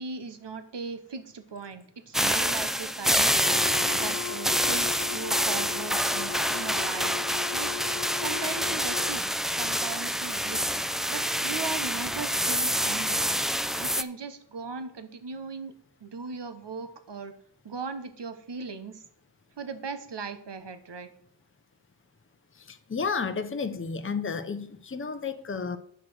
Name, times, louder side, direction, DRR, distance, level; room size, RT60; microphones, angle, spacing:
voice 1, 0.0-3.3 3.9-7.7 8.2-10.7 11.1-13.3 13.8-15.7 16.0-17.3 17.6-19.0 19.6-21.1, right 5 dB, 75° right, 10 dB, 1.2 m, -38 dB
sound 1, 2.1-14.0, equal, ahead, 0.4 m, -27 dB
Wind instrument woodwind instrument, 3.4-9.2, left 13 dB, 65° left, 0.5 m, -38 dB
voice 2, 22.7-25.8, left 5 dB, 30° left, 9 dB, 0.7 m, -32 dB
9.1 x 5.9 x 6.3 m, 0.68 s
wide cardioid pair, 70°, 42 cm